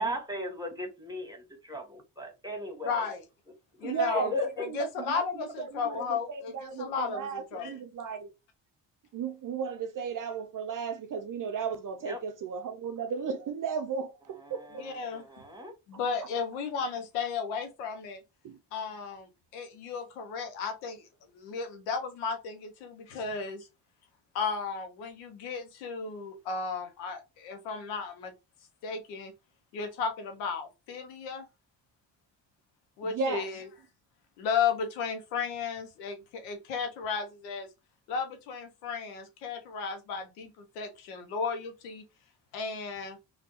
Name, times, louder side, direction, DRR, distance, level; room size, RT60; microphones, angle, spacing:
voice 1, 0.0-3.1 3.7-4.7 12.0-12.2 14.3-15.7, left 1 dB, 10° right, 1.4 m, -37 dB
voice 2, 2.9-3.2 3.8-4.3 4.8-7.7 14.8-15.2 15.9-18.2 18.7-23.7 24.3-28.3 28.8-29.3 29.7-31.4 33.0-33.6 34.4-37.7 38.1-42.0 42.5-43.2, left 5 dB, 90° left, 0.8 m, -34 dB
voice 3, 3.8-4.3 5.1-5.2 5.6-8.3 9.1-14.9 18.4-18.6 33.0-33.5, right 6 dB, 40° right, 0.5 m, -35 dB
3.3 x 2.4 x 2.9 m
hypercardioid pair, 45°, 49 cm